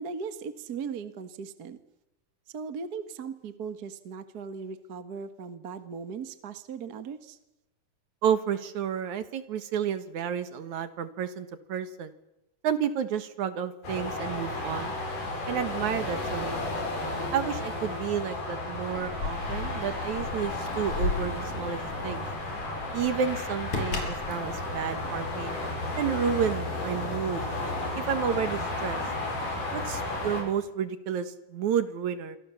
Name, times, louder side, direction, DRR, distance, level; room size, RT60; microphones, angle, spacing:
voice 1, 0.0-1.8 2.5-7.4, right 5 dB, 45° right, 10 dB, 1.4 m, -38 dB
voice 2, 8.2-12.1 12.6-14.9 15.5-16.7 17.3-22.3 22.9-25.6 26.0-27.4 28.0-29.0 29.7-32.4, right 8 dB, 65° right, 11 dB, 2.7 m, -31 dB
sound 1, 13.8-30.4, left 2 dB, 75° left, 7.9 m, -33 dB
Keys jangling, 18.8-25.7, left 3 dB, 60° left, 6.6 m, -36 dB
27.5 x 24.0 x 7.1 m, 0.90 s
omnidirectional pair, 3.7 m